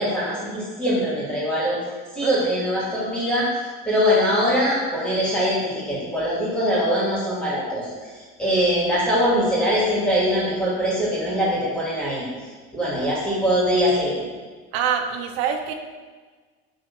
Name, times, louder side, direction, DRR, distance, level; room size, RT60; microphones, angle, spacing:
voice 1, 0.0-1.8 2.1-3.5 3.8-7.9 8.4-12.3 12.7-14.2, equal, 5° left, -7 dB, 2.5 m, -22 dB
voice 2, 14.7-15.7, right 8 dB, 90° right, 4 dB, 1.0 m, -25 dB
9.5 x 3.8 x 6.1 m, 1.4 s
cardioid pair, 165°, 30 cm